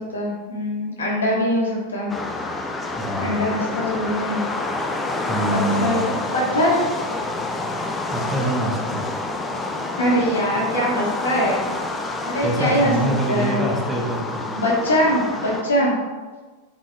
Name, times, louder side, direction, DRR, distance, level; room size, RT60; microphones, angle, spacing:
voice 1, 0.1-2.1 3.2-4.4 5.5-6.8 10.0-11.6 12.3-12.9 13.3-13.6 14.5-15.9, equal, 65° left, -3 dB, 1.8 m, -22 dB
sound 1, 2.1-15.6, left 2 dB, 15° left, 0.6 m, -28 dB
voice 2, 3.0-3.4 5.3-6.0 8.1-9.0 12.4-14.4, right 1 dB, 10° right, -2 dB, 1.2 m, -25 dB
7.4 x 4.3 x 3.3 m, 1.3 s
figure-of-eight pair, 90°, 0 cm